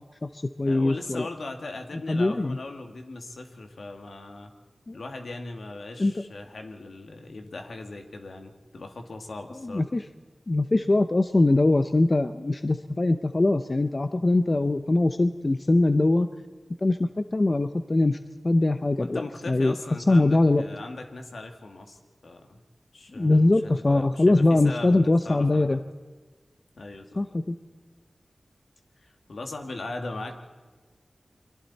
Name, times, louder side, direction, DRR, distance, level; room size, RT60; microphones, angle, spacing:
voice 1, 0.0-1.3 2.1-2.6 4.9-5.0 6.0-6.1 9.6-10.0 10.5-16.3 16.8-18.2 18.4-19.7 20.1-20.6 23.2-25.8 27.2-27.6, left 2 dB, 45° left, 9 dB, 0.8 m, -22 dB
voice 2, 0.7-4.5 4.9-9.9 19.0-22.6 22.9-25.8 26.8-27.2 29.0-30.4, left 2 dB, 80° left, 4 dB, 2.2 m, -39 dB
29.0 x 23.0 x 4.2 m, 1.4 s
cardioid pair, 50°, 0 cm